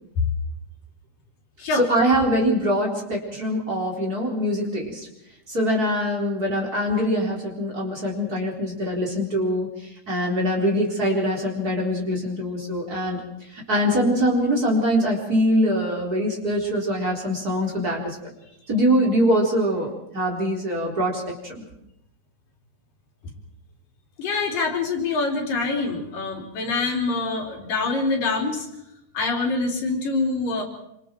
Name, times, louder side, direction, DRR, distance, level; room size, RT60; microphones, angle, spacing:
voice 1, 1.7-5.1 5.5-9.7 10.1-13.2 13.7-18.2 18.7-21.6, equal, 25° right, -1 dB, 4.5 m, -23 dB
voice 2, 24.2-28.7 29.1-30.6, left 3 dB, 90° left, 1 dB, 5.3 m, -25 dB
26.5 x 26.5 x 4.6 m, 0.79 s
omnidirectional pair, 3.8 m